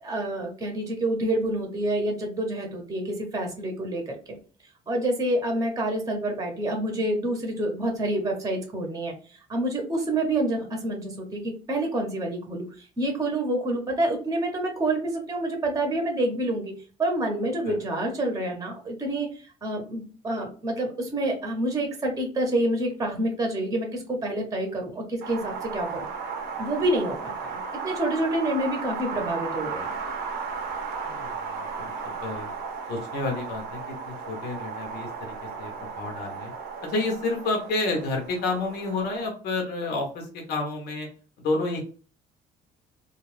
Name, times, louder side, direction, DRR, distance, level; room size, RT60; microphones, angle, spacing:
voice 1, 0.0-4.1 4.9-9.1 9.5-12.7 13.0-16.7 17.0-19.3 19.6-26.1 26.6-29.9, right 1 dB, 20° right, 2 dB, 0.8 m, -27 dB
Wind, 25.2-39.3, right 5 dB, 85° right, 0.7 m, -35 dB
voice 2, 31.0-32.5 32.9-36.5 36.8-41.1 41.4-41.8, left 2 dB, 70° left, 1 dB, 0.9 m, -30 dB
2.4 x 2.3 x 3.2 m, 0.39 s
cardioid pair, 110°, 17 cm